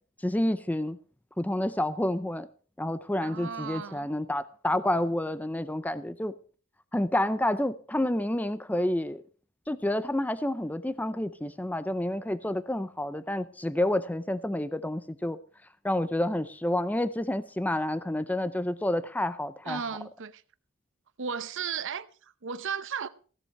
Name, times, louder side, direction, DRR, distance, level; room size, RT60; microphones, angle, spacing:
voice 1, 0.2-1.0 1.4-2.5 2.8-6.3 6.9-9.2 9.7-15.4 15.8-19.8, left 1 dB, 5° left, 0.5 m, -29 dB
voice 2, 3.2-4.1 19.6-20.4 21.2-23.1, right 6 dB, 60° right, 0.8 m, -35 dB
16.0 x 7.5 x 5.8 m
head